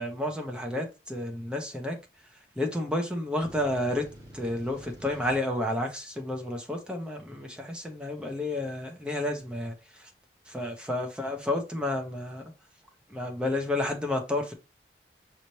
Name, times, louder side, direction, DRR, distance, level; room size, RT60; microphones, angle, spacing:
voice 1, 0.0-2.0 2.6-4.1 4.3-10.1 10.5-12.5 13.1-14.5, left 1 dB, 5° right, 0.8 m, -31 dB
sound 1, 3.4-5.4, equal, 20° right, 2.0 m, -48 dB
5.6 x 3.2 x 2.8 m
head